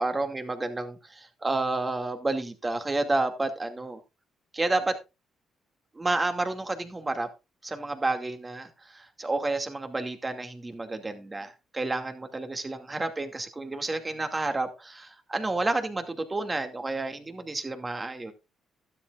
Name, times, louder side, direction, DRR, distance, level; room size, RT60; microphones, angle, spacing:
voice 1, 0.0-4.0 4.5-5.0 6.0-7.3 7.6-18.3, right 2 dB, 20° right, 6 dB, 2.4 m, -30 dB
12.5 x 12.5 x 2.5 m, 0.26 s
cardioid pair, 90°, 0 cm